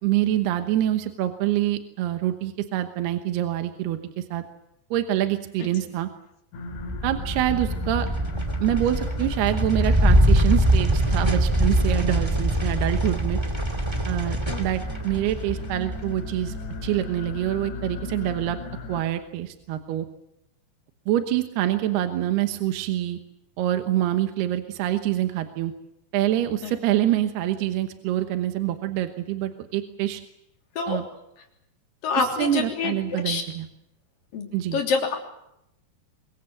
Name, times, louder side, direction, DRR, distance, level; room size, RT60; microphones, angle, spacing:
voice 1, 0.0-4.4 4.9-6.1 7.0-8.1 8.6-13.4 14.0-16.6 16.8-18.6 18.9-20.1 21.1-23.2 23.6-25.7 26.1-30.2 30.9-31.0 32.2-33.7 34.5-34.8, right 13 dB, 75° right, 7 dB, 3.0 m, -26 dB
sound 1, 6.5-19.0, left 5 dB, 80° left, 4.2 m, -38 dB
sound 2, 6.7-17.3, right 1 dB, 15° right, 1.1 m, -23 dB
voice 2, 32.0-33.4 34.3-35.2, left 4 dB, 55° left, 2 dB, 4.8 m, -27 dB
24.0 x 22.5 x 7.8 m, 0.82 s
omnidirectional pair, 5.0 m